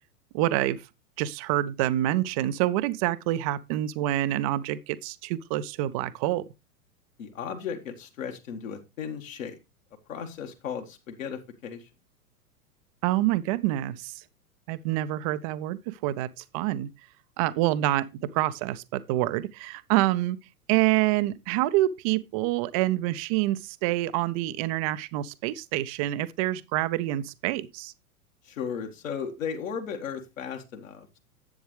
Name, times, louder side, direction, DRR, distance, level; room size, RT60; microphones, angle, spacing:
voice 1, 0.3-0.8 1.2-6.5 13.0-14.2 14.7-16.3 16.5-16.9 17.4-20.4 20.7-27.9, right 15 dB, 25° right, 0.5 m, -27 dB
voice 2, 7.2-9.6 10.1-11.9 28.4-31.2, left 7 dB, 55° left, 1.8 m, -35 dB
10.5 x 8.0 x 3.2 m
figure-of-eight pair, 100°, 46 cm